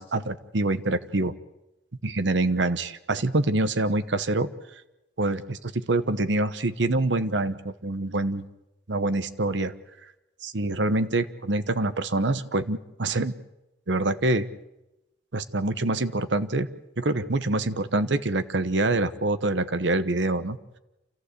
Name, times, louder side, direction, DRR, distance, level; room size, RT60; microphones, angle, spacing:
voice 1, 0.0-1.3 2.0-4.5 5.2-8.4 8.9-9.7 10.4-13.3 13.9-14.5 15.3-16.7 17.0-20.6, right 2 dB, 80° right, 12 dB, 1.1 m, -25 dB
28.0 x 14.5 x 8.2 m, 0.96 s
head